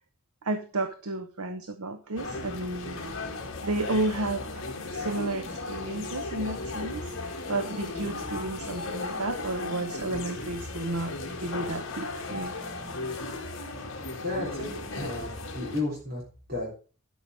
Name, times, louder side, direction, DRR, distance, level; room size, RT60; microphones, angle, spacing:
voice 1, 0.4-3.0 3.6-4.6 4.9-12.5, right 2 dB, 75° right, 8 dB, 0.9 m, -32 dB
sound 1, 2.2-15.8, left 2 dB, 55° left, 2.0 m, -36 dB
voice 2, 14.2-16.2 16.5-16.7, left 2 dB, 40° right, -3 dB, 3.5 m, -33 dB
12.0 x 5.7 x 4.9 m, 0.36 s
head